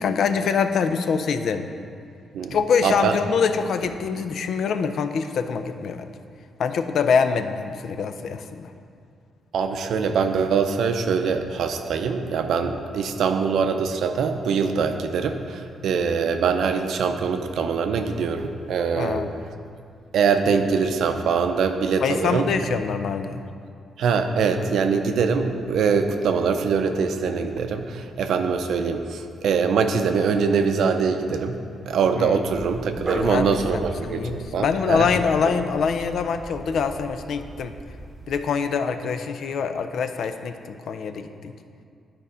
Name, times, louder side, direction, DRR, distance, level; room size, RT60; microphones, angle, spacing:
voice 1, 0.0-1.7 2.5-6.1 6.6-8.7 19.0-19.3 22.0-23.4 32.2-32.4 32.9-37.7 38.3-41.5, left 6 dB, 70° left, 8 dB, 0.5 m, -24 dB
voice 2, 2.8-3.2 9.5-19.2 20.1-22.5 24.0-31.6 31.9-35.1, right 5 dB, 75° right, 7 dB, 0.6 m, -23 dB
Dog, 32.5-38.4, right 2 dB, 35° right, 0.8 m, -37 dB
10.5 x 4.3 x 5.0 m, 2.3 s
cardioid pair, 105°, 0 cm